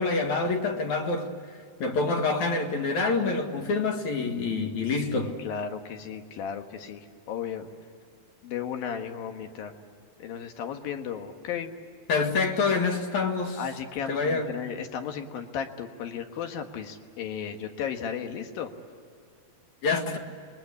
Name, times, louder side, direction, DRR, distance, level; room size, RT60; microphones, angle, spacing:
voice 1, 0.0-1.3 1.8-5.4 12.1-13.6 14.1-14.5 19.8-20.2, left 4 dB, 55° left, 2.9 m, -26 dB
voice 2, 5.0-7.7 8.4-9.7 10.2-11.7 13.6-18.7, left 8 dB, 70° left, 3.2 m, -35 dB
28.0 x 22.5 x 8.5 m
omnidirectional pair, 4.5 m